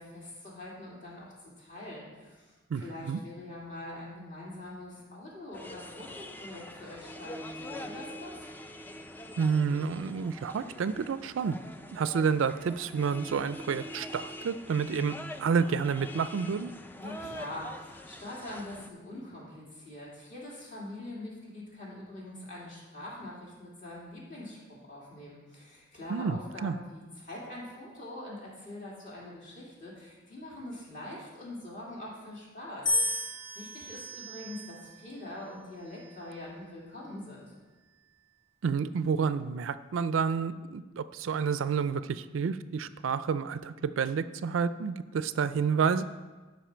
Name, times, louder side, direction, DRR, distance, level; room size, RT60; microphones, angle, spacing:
voice 1, 0.0-8.5 17.0-37.5, left 1 dB, 40° left, -5 dB, 2.8 m, -44 dB
voice 2, 2.7-3.2 9.4-11.6 11.9-16.7 26.1-26.8 38.6-46.0, right 6 dB, 75° right, 13 dB, 0.4 m, -29 dB
sound 1, 5.5-18.9, left 1 dB, 10° left, 0.4 m, -44 dB
sound 2, 32.9-35.1 35.9-36.4, left 1 dB, 75° left, 2.4 m, -33 dB
12.0 x 5.4 x 4.4 m, 1.3 s
head